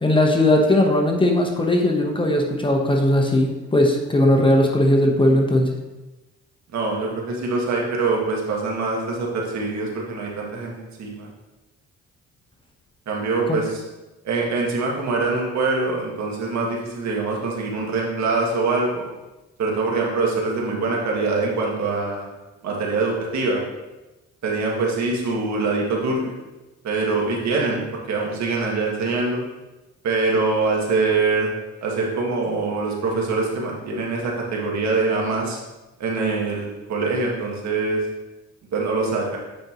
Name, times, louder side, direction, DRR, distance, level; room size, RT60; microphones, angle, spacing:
voice 1, 0.0-5.8 13.5-13.6, left 1 dB, 15° left, 1 dB, 1.0 m, -18 dB
voice 2, 6.7-11.3 13.1-13.8 14.2-19.0 19.6-22.3 22.6-23.6 24.4-26.4 26.8-29.4 30.0-31.5 31.8-35.6 36.0-38.0 38.7-39.4, right 3 dB, 65° right, -1 dB, 1.7 m, -24 dB
8.6 x 5.2 x 3.0 m, 1.1 s
cardioid pair, 90°, 30 cm